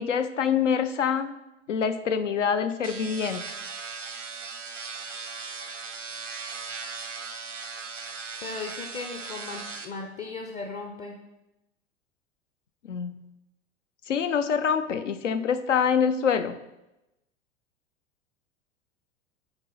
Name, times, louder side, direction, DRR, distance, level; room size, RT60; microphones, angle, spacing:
voice 1, 0.0-1.3 1.7-3.6 12.9-13.1 14.1-16.6, left 7 dB, 80° left, 10 dB, 0.5 m, -25 dB
sound 1, 2.8-9.9, right 5 dB, 85° right, 0.8 m, -38 dB
voice 2, 8.4-11.2, left 4 dB, 20° left, 3 dB, 0.5 m, -37 dB
8.0 x 4.0 x 4.0 m, 0.94 s
figure-of-eight pair, 85°, 37 cm